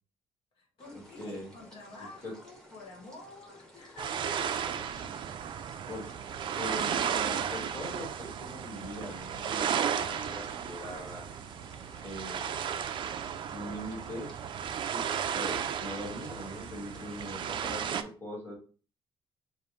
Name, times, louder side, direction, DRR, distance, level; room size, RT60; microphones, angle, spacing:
voice 1, 0.5-5.3, left 3 dB, 65° left, -1 dB, 1.8 m, -50 dB
sound 1, 0.8-18.0, equal, 5° left, 1.2 m, -55 dB
voice 2, 1.2-1.5 2.2-2.3 5.9-6.1 6.6-11.3 12.0-12.5 13.5-14.3 14.9-15.0 15.3-18.6, left 1 dB, 25° left, -4 dB, 2.3 m, -41 dB
sound 2, 4.0-18.0, right 8 dB, 50° right, 0.4 m, -34 dB
4.9 x 2.6 x 3.5 m, 0.37 s
cardioid pair, 155°, 10 cm